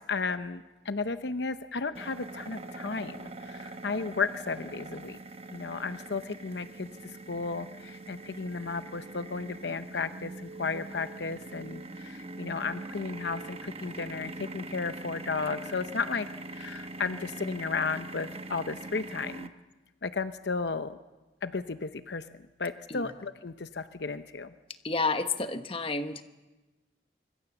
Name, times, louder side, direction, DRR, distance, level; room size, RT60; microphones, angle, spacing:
voice 1, 0.1-5.2 5.5-19.5 20.0-21.0 21.4-22.3 22.6-24.5, left 4 dB, 65° left, 11 dB, 0.8 m, -34 dB
sound 1, 2.0-19.5, right 2 dB, 35° right, 1.0 m, -43 dB
voice 2, 24.8-26.2, left 3 dB, 30° left, 8 dB, 1.2 m, -30 dB
25.0 x 24.0 x 7.2 m, 1.1 s
head